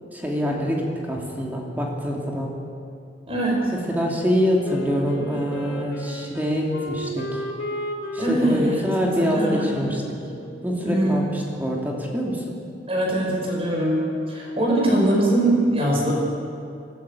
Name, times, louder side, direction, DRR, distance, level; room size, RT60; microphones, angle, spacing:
voice 1, 0.1-2.5 3.7-7.4 8.1-10.0 10.6-12.4 14.9-15.1, equal, 10° right, -2 dB, 2.8 m, -25 dB
voice 2, 3.3-3.7 8.2-10.0 10.8-11.1 12.9-16.1, right 1 dB, 30° right, -2 dB, 5.3 m, -22 dB
Wind instrument woodwind instrument, 4.6-11.2, equal, 85° left, 2.8 m, -35 dB
24.0 x 15.5 x 8.5 m, 2.4 s
head